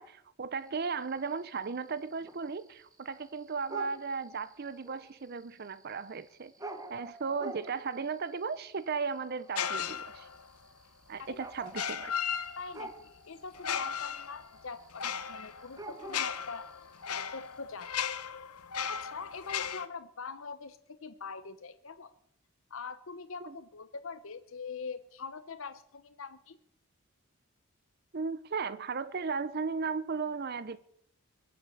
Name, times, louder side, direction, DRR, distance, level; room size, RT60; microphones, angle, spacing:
voice 1, 0.0-6.5 6.9-10.3 11.1-12.1 23.5-23.6 28.1-30.8, right 5 dB, 45° right, 0.5 m, -36 dB
sound 1, 0.7-17.6, right 2 dB, 15° right, 1.2 m, -49 dB
sound 2, 9.6-10.5 11.7-12.9 13.5-19.9, left 8 dB, 90° left, 1.1 m, -36 dB
voice 2, 12.6-16.7 17.0-18.1 18.9-22.1 22.7-26.6, left 5 dB, 60° left, 0.7 m, -43 dB
22.5 x 7.8 x 7.7 m
head